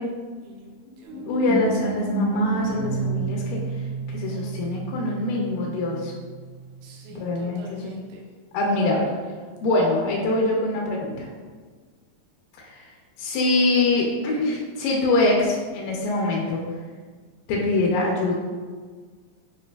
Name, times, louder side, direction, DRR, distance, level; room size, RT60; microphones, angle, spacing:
voice 1, 0.0-1.3 4.1-4.6 6.8-8.2, right 2 dB, 90° right, -2 dB, 2.6 m, -47 dB
sound 1, 1.1-6.9, right 2 dB, 70° right, 2.8 m, -30 dB
voice 2, 1.3-3.6 4.1-6.1 7.2-7.9 8.5-9.1 9.6-11.3 12.6-12.9 13.2-16.6 17.5-18.3, left 2 dB, 85° left, -2 dB, 1.9 m, -24 dB
6.0 x 2.5 x 2.2 m, 1.5 s
omnidirectional pair, 4.4 m